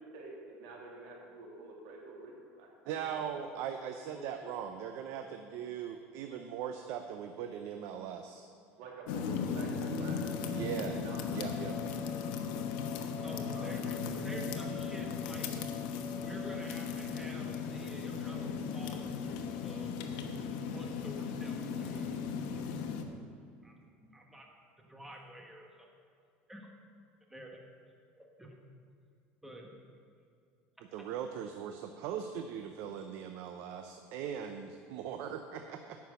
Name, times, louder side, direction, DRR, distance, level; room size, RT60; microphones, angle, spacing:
voice 1, 0.0-3.2 8.8-11.5 13.5-14.3, right 2 dB, 80° right, -1 dB, 2.7 m, -49 dB
voice 2, 2.9-8.5 10.5-10.9 11.3-11.7 30.9-36.0, right 8 dB, 65° right, 6 dB, 0.7 m, -40 dB
sound 1, 9.1-23.0, left 6 dB, 80° left, 1.1 m, -37 dB
voice 3, 13.2-15.5 16.2-19.9 20.7-22.1 23.6-23.7 24.0-24.5 24.8-25.9 26.5-26.7 27.3-27.6 28.2-28.5 29.4-29.7, right 1 dB, 5° right, 0 dB, 1.4 m, -49 dB
10.5 x 6.1 x 8.5 m, 2.4 s
cardioid pair, 140°, 5 cm